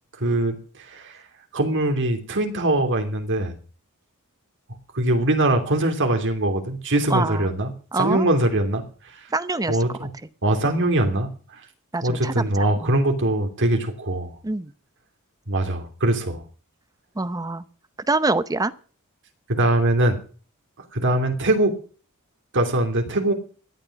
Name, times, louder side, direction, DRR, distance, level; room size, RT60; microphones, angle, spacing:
voice 1, 0.2-0.6 0.9-1.2 1.5-3.6 4.9-8.9 9.7-10.1 10.4-11.3 12.0-14.4 15.5-16.4 19.5-20.2 20.9-21.7 22.5-23.3, right 1 dB, 60° right, 5 dB, 2.9 m, -22 dB
voice 2, 7.1-7.5 7.9-8.3 9.3-9.8 10.6-10.8 11.9-13.0 14.4-14.7 17.2-17.6 18.1-18.7, right 2 dB, 15° right, 14 dB, 0.7 m, -25 dB
17.0 x 10.5 x 5.9 m, 0.40 s
head